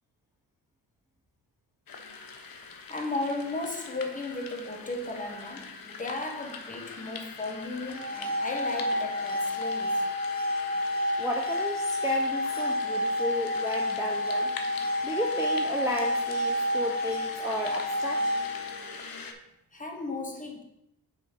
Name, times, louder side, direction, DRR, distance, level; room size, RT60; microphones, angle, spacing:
sound 1, 1.9-19.3, left 5 dB, 55° left, 0.9 m, -42 dB
voice 1, 2.9-10.1 19.7-20.6, left 2 dB, 20° left, 1 dB, 1.5 m, -35 dB
sound 2, 7.9-18.9, left 1 dB, 45° right, 1.1 m, -29 dB
voice 2, 11.2-14.5 15.0-18.2, equal, 5° right, 0 dB, 0.7 m, -33 dB
6.5 x 3.8 x 5.4 m, 0.83 s
cardioid pair, 75°, 42 cm